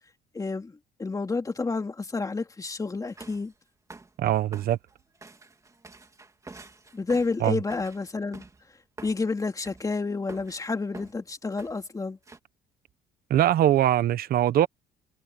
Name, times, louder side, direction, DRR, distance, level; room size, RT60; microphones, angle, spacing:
voice 1, 0.3-3.5 6.9-8.4 9.0-12.2, left 3 dB, 20° left, 2.8 m, -30 dB
sound 1, 3.1-3.5 3.9-4.2 4.5-8.6 9.0-9.2 9.6-9.9 10.3-10.7 10.9-11.2 11.6-11.8 12.2-12.4, right 3 dB, 20° right, 2.5 m, -47 dB
voice 2, 4.2-4.8 7.4-7.6 13.3-14.7, right 12 dB, 65° right, 1.1 m, -22 dB
cardioid pair, 110°, 17 cm